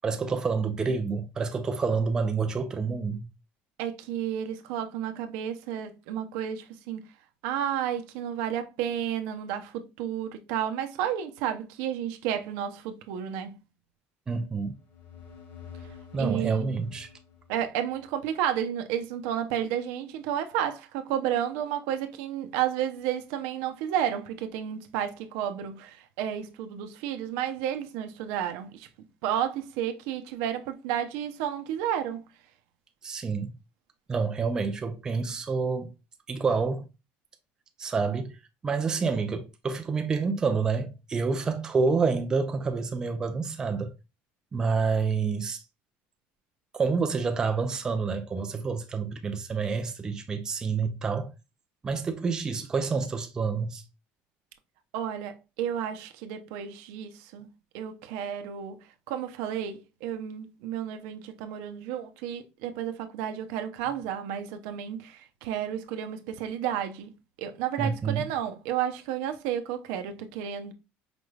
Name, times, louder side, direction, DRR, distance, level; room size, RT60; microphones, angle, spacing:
voice 1, 0.0-3.3 14.3-14.8 16.1-17.1 33.0-33.5 34.1-35.9 36.3-36.8 37.8-38.4 38.6-43.9 44.5-45.6 46.7-51.3 51.8-53.8 67.8-68.2, right 4 dB, 15° right, 0.4 m, -28 dB
voice 2, 3.8-7.0 7.4-13.6 16.2-16.8 17.5-28.9 29.2-32.2 54.9-57.5 57.7-67.1 67.4-70.7, right 10 dB, 80° right, 0.6 m, -32 dB
sound 1, 14.6-18.3, left 7 dB, 60° left, 1.5 m, -48 dB
5.0 x 3.2 x 2.3 m
cardioid pair, 175°, 5 cm